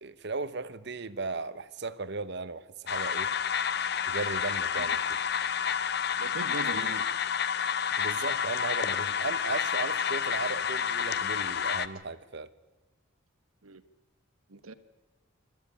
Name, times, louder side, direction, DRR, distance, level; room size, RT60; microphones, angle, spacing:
voice 1, 0.0-3.3 4.0-5.2 6.7-7.0 8.0-12.5, right 3 dB, 55° right, 0.9 m, -36 dB
sound 1, 2.9-11.9, left 7 dB, 50° left, 0.7 m, -29 dB
voice 2, 6.2-7.1 13.6-13.8 14.5-14.7, right 3 dB, 90° right, 1.3 m, -39 dB
27.0 x 13.0 x 9.9 m
head